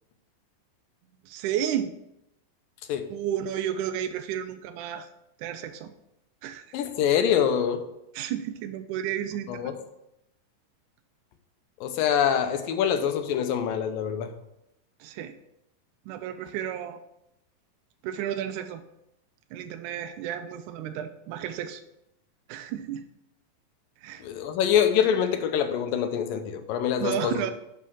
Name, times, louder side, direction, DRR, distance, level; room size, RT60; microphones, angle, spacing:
voice 1, 1.3-1.9 3.1-5.1 5.4-5.9 6.4-6.6 8.1-9.7 15.0-15.4 16.1-17.0 18.0-18.8 19.5-21.8 22.5-23.0 24.0-24.3 27.0-27.5, right 10 dB, 80° right, 8 dB, 1.8 m, -32 dB
voice 2, 6.7-7.8 9.5-9.7 11.8-14.3 24.2-27.4, left 8 dB, 85° left, 7 dB, 2.5 m, -25 dB
7.4 x 5.7 x 6.1 m, 0.84 s
omnidirectional pair, 3.9 m